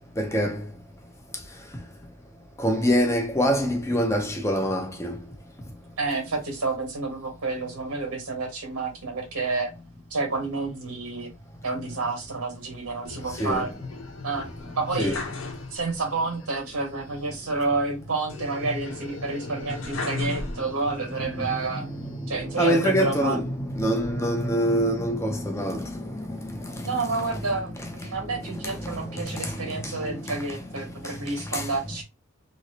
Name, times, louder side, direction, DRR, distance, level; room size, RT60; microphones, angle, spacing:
voice 1, 0.2-0.7 2.6-5.2 13.3-13.7 15.0-15.2 19.4-20.6 21.0-27.4 27.7-31.7, equal, 15° left, 0.5 m, -27 dB
voice 2, 6.0-9.7 10.1-11.3 11.6-13.7 14.2-14.5 14.7-15.2 15.7-21.9 22.3-23.4 26.8-32.0, right 3 dB, 90° right, 1.6 m, -29 dB
sound 1, 13.0-16.1 16.4-16.5 18.3-21.0 21.6-22.4, left 3 dB, 60° left, 0.9 m, -36 dB
3.0 x 3.0 x 2.8 m
head